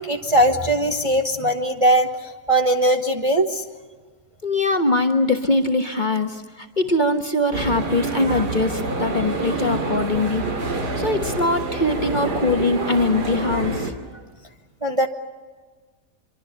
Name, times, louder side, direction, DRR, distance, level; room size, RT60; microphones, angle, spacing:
voice 1, 0.0-3.6 8.3-8.4 14.8-15.1, right 1 dB, 20° right, 3 dB, 1.1 m, -20 dB
voice 2, 4.4-10.4 11.0-13.9, left 2 dB, 30° left, 5 dB, 1.3 m, -22 dB
sound 1, 7.5-13.9, right 3 dB, 85° right, 3.1 m, -27 dB
25.0 x 24.0 x 6.8 m, 1.4 s
omnidirectional pair, 1.7 m